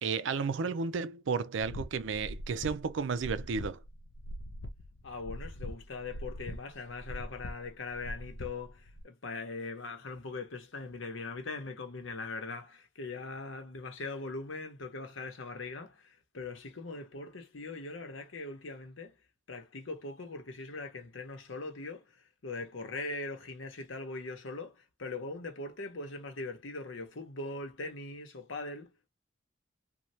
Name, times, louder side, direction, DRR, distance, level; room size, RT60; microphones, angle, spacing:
voice 1, 0.0-3.8, right 5 dB, 75° right, 0.4 m, -33 dB
sound 1, 1.6-9.0, equal, 70° left, 0.6 m, -43 dB
voice 2, 5.0-19.2 19.5-29.1, left 3 dB, 85° left, 0.9 m, -41 dB
3.2 x 2.3 x 2.6 m
head